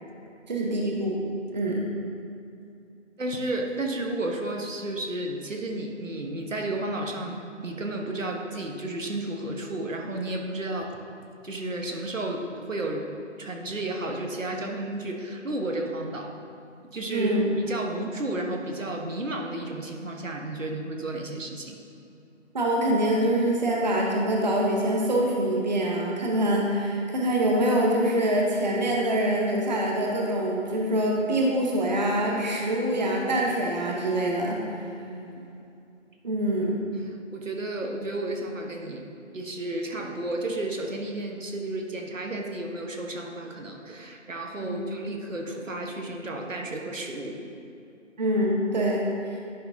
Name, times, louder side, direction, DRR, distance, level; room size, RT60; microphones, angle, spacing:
voice 1, 0.5-1.2 1.5-1.9 17.1-17.5 22.5-34.6 36.2-36.8 44.6-44.8 48.2-49.4, right 1 dB, 35° right, -2 dB, 0.8 m, -25 dB
voice 2, 3.2-11.0 11.4-13.1 13.4-16.3 16.8-21.8 35.1-35.4 37.3-39.0 39.3-47.4, right 2 dB, 90° right, 1 dB, 1.2 m, -32 dB
10.5 x 5.9 x 2.6 m, 2.6 s
figure-of-eight pair, 160°, 37 cm